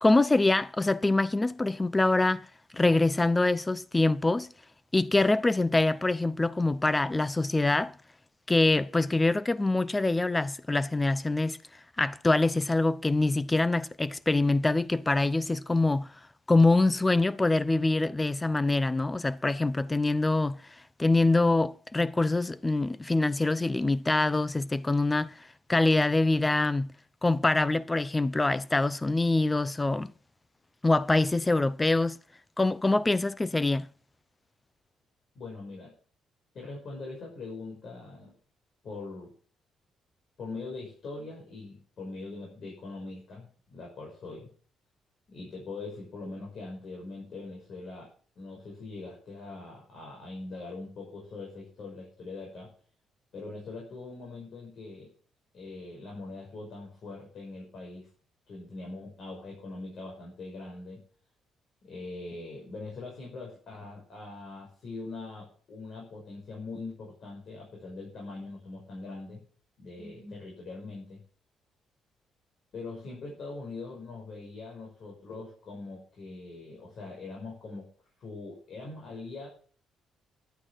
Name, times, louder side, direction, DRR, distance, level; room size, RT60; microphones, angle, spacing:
voice 1, 0.0-2.5 2.7-4.5 4.9-7.9 8.5-11.6 12.0-16.1 16.5-20.6 21.0-25.3 25.7-26.9 27.2-30.1 30.8-32.2 32.6-33.9, left 2 dB, 15° left, 0.6 m, -25 dB
voice 2, 35.3-35.9 36.5-38.3 38.8-39.3 40.4-44.5 45.3-52.7 53.3-55.1 55.5-58.1 58.5-61.0 61.8-69.4 69.8-71.2 72.7-77.9 78.2-79.5, left 3 dB, 60° left, 5.8 m, -42 dB
11.5 x 8.9 x 6.0 m
cardioid pair, 90°, 0 cm